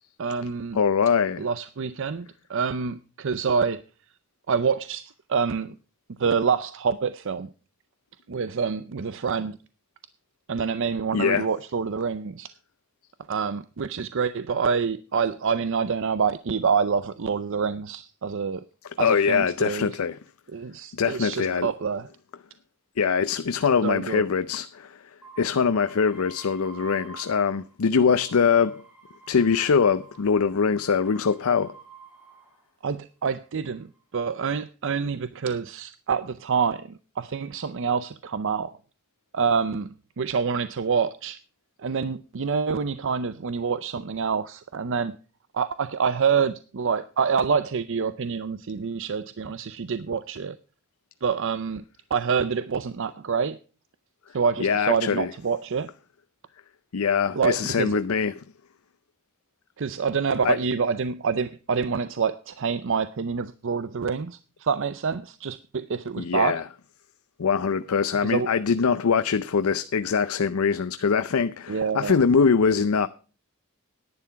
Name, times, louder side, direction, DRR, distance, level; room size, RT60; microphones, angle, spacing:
voice 1, 0.2-0.8 1.4-3.8 4.5-5.8 6.2-7.5 8.3-9.6 10.5-12.5 13.3-18.6 19.0-20.0 20.5-22.1 23.8-24.2 32.8-38.7 39.3-41.4 41.8-45.2 45.5-50.6 51.2-51.8 52.1-53.6 54.3-55.9 57.3-58.0 59.8-66.6 68.2-68.5 71.7-72.2, right 6 dB, 65° right, 0.5 m, -27 dB
voice 2, 0.7-1.5 11.1-11.5 19.0-20.2 20.9-21.7 23.0-24.9 25.4-28.8 29.3-31.7 54.6-55.3 56.9-58.4 60.4-60.6 66.2-66.6 67.4-73.1, left 6 dB, 90° left, 0.5 m, -23 dB
sound 1, 25.2-27.8 28.1-32.7 33.4-34.0, right 5 dB, 10° right, 3.9 m, -49 dB
11.0 x 9.6 x 5.7 m
head